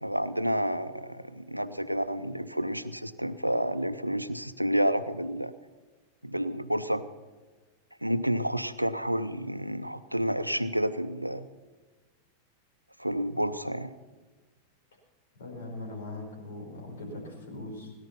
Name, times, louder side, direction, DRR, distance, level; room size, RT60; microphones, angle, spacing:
voice 1, 0.0-5.5 6.2-7.0 8.0-11.5 13.0-13.9, equal, 90° right, 12 dB, 0.6 m, -30 dB
voice 2, 15.4-17.9, left 2 dB, 65° left, -1 dB, 5.0 m, -40 dB
18.0 x 10.5 x 5.7 m, 1.3 s
figure-of-eight pair, 90°, 0 cm